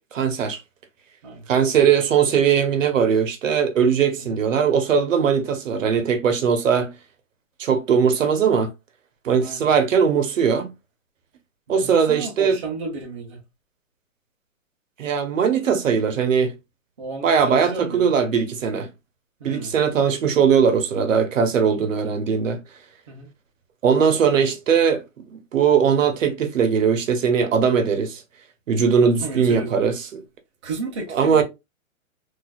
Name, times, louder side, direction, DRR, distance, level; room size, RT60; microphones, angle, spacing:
voice 1, 0.1-0.6 1.5-6.9 7.6-8.7 9.2-10.7 11.7-12.6 15.0-16.5 17.2-18.9 19.4-22.6 23.8-28.2 28.7-30.2 31.1-31.4, right 6 dB, 65° right, 0.9 m, -20 dB
voice 2, 9.4-9.7 11.7-13.4 17.0-18.1 19.4-19.7 23.1-23.3 29.0-29.8 30.6-31.4, right 3 dB, 20° right, 0.6 m, -33 dB
4.1 x 2.6 x 2.3 m
hypercardioid pair, 170°, 41 cm